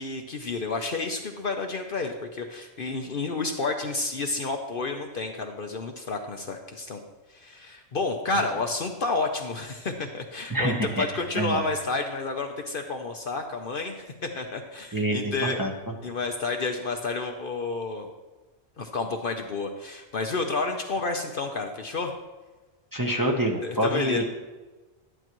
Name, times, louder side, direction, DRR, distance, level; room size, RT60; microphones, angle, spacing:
voice 1, 0.0-7.0 7.3-15.6 16.0-18.1 18.8-22.1 23.6-24.2, left 3 dB, 50° left, 4 dB, 0.9 m, -30 dB
voice 2, 10.5-11.0 11.3-11.6 14.9-15.7 22.9-24.2, right 1 dB, 20° right, 0 dB, 0.9 m, -26 dB
11.0 x 11.0 x 3.0 m, 1.2 s
omnidirectional pair, 1.2 m